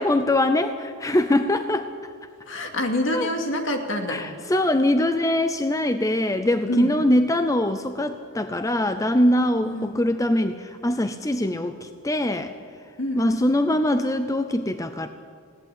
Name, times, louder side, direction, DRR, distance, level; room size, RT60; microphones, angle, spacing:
voice 1, 0.0-1.9 3.1-3.3 4.1-12.5 13.2-15.1, left 1 dB, 15° left, 9 dB, 0.6 m, -22 dB
voice 2, 2.5-4.2 6.7-7.0 9.6-10.0 13.0-13.5, left 1 dB, 60° left, 3 dB, 2.5 m, -27 dB
20.0 x 17.5 x 8.4 m, 2.3 s
head